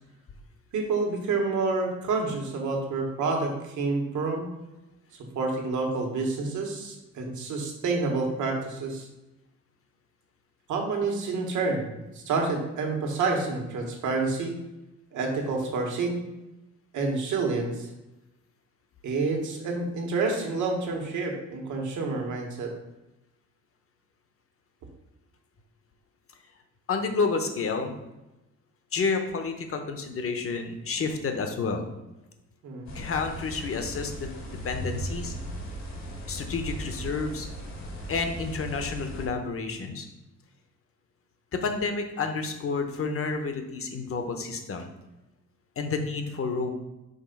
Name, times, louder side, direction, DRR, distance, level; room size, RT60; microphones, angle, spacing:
voice 1, 0.7-4.5 5.3-9.1 10.7-14.6 15.1-16.2 16.9-17.9 19.0-22.7 32.6-32.9, right 3 dB, 75° right, 1 dB, 1.5 m, -28 dB
voice 2, 26.9-27.9 28.9-31.8 32.9-35.3 36.3-37.5 38.1-40.1 41.5-44.9 45.8-46.7, left 4 dB, 45° left, 6 dB, 1.0 m, -30 dB
sound 1, 32.9-39.3, right 1 dB, 65° left, 1.8 m, -37 dB
5.3 x 3.3 x 5.3 m, 0.98 s
cardioid pair, 90°, 30 cm